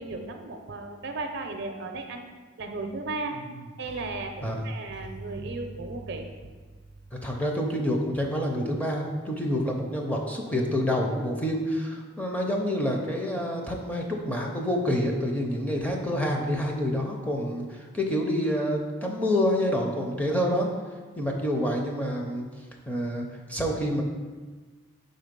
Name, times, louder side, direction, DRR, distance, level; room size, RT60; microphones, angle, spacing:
voice 1, 0.0-2.2 2.6-3.4 3.8-6.3, right 3 dB, 55° right, 5 dB, 0.5 m, -35 dB
voice 2, 7.2-20.7 21.2-22.5 22.9-24.0, equal, 5° left, 0 dB, 0.5 m, -27 dB
4.8 x 3.9 x 5.1 m, 1.4 s
head